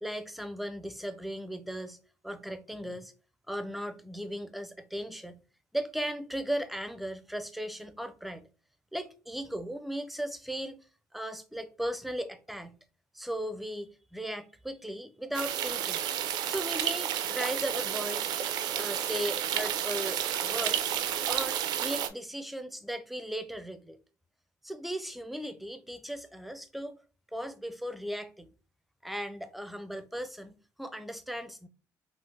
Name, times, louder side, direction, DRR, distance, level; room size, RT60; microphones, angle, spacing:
voice 1, 0.0-2.0 2.2-3.1 3.5-5.4 5.7-8.5 8.9-10.8 11.1-12.8 13.1-16.0 16.5-18.3 18.7-20.9 21.3-24.0 24.6-27.0 27.3-28.5 29.0-31.7, equal, ahead, 0.4 m, -37 dB
sound 1, 15.3-22.1, right 10 dB, 80° right, 0.4 m, -31 dB
3.4 x 2.0 x 3.1 m
cardioid pair, 100°, 7 cm